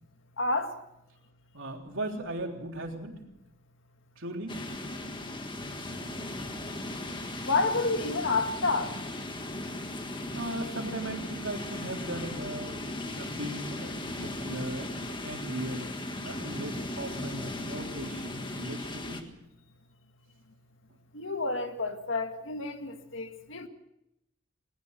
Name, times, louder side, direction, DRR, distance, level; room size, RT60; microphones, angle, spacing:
voice 1, 0.4-0.7 7.5-8.9 21.1-23.7, left 3 dB, 65° left, 1.9 m, -29 dB
voice 2, 1.5-3.2 4.2-4.6 10.4-12.7 13.2-14.9 15.2-15.9 16.2-19.2, right 1 dB, 70° right, 3.5 m, -37 dB
sound 1, 4.5-19.2, left 1 dB, 25° left, 1.6 m, -37 dB
20.5 x 19.0 x 6.6 m
head